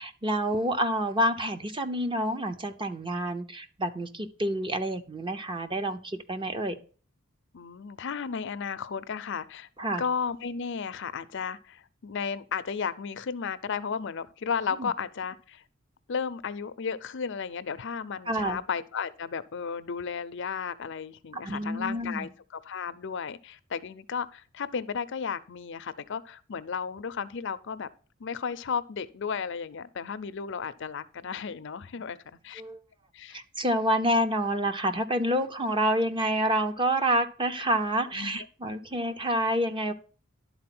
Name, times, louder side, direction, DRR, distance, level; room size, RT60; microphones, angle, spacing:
voice 1, 0.0-6.8 9.8-10.0 14.8-14.9 18.3-18.6 21.4-22.3 32.6-32.8 33.3-39.9, equal, 25° right, 0.8 m, -28 dB
voice 2, 7.5-9.7 10.0-15.6 16.1-27.9 28.2-32.2 32.4-32.6 33.1-33.4 38.1-38.5, left 6 dB, 65° left, 0.5 m, -34 dB
11.5 x 4.1 x 5.9 m
head